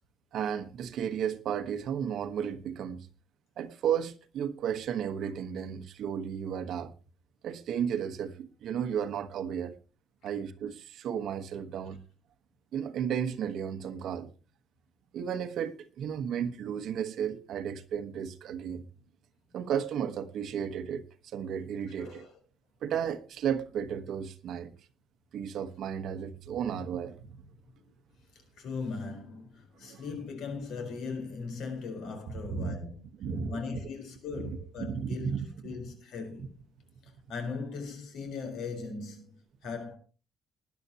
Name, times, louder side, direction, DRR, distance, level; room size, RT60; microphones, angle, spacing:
voice 1, 0.3-3.1 3.6-6.9 7.4-9.7 10.2-12.0 12.7-14.3 15.1-18.9 19.5-21.1 21.3-22.3 22.8-24.7 25.3-27.4 29.8-30.0 32.5-32.7 33.2-33.5 34.4-35.7, right 8 dB, 60° right, 1.2 m, -33 dB
voice 2, 22.0-22.4 28.6-33.0 33.5-36.6 37.0-40.0, left 4 dB, 75° left, 4.3 m, -39 dB
19.5 x 10.5 x 2.9 m
cardioid pair, 170°, 0 cm